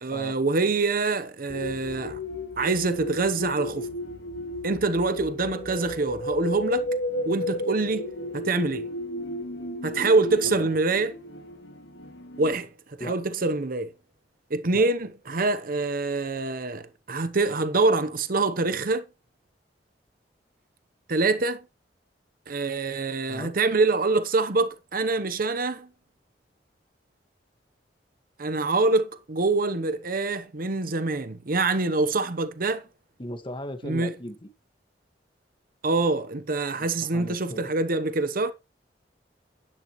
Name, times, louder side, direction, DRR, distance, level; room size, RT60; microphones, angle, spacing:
voice 1, 0.0-2.2 2.6-3.9 4.6-6.9 7.2-8.1 8.3-8.9 9.8-11.1 12.4-12.7 13.0-13.9 14.5-19.1 21.1-21.6 22.5-25.9 28.4-32.8 33.8-34.1 35.8-38.5, right 3 dB, 55° right, 0.9 m, -25 dB
sound 1, 1.5-12.5, left 1 dB, 80° left, 1.8 m, -34 dB
voice 2, 33.2-34.5 36.8-37.7, left 1 dB, 30° left, 1.6 m, -37 dB
10.5 x 10.5 x 3.1 m
head